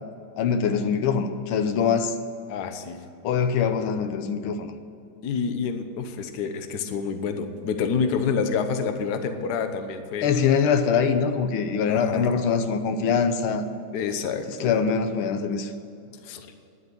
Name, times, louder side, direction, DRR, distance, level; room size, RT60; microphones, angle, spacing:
voice 1, 0.4-2.2 3.2-4.7 10.2-13.6 14.6-15.7, left 6 dB, 85° left, 8 dB, 1.7 m, -23 dB
voice 2, 2.5-3.0 5.2-10.3 11.9-12.3 13.9-14.7 16.2-16.5, left 6 dB, 55° left, 7 dB, 1.4 m, -28 dB
10.5 x 8.0 x 9.7 m, 2.6 s
omnidirectional pair, 2.3 m